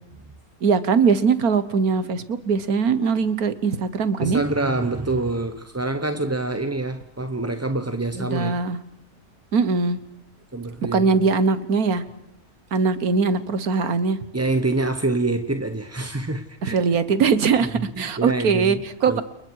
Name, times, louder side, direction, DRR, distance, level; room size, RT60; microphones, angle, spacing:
voice 1, 0.6-4.4 8.1-8.8 9.5-10.0 10.9-12.0 12.7-14.2 16.6-19.2, right 5 dB, 75° right, 1.7 m, -21 dB
voice 2, 4.2-8.6 10.5-11.0 14.3-16.8 17.7-18.8 19.1-19.2, right 2 dB, 15° right, 0.6 m, -26 dB
29.5 x 29.0 x 4.7 m
omnidirectional pair, 1.6 m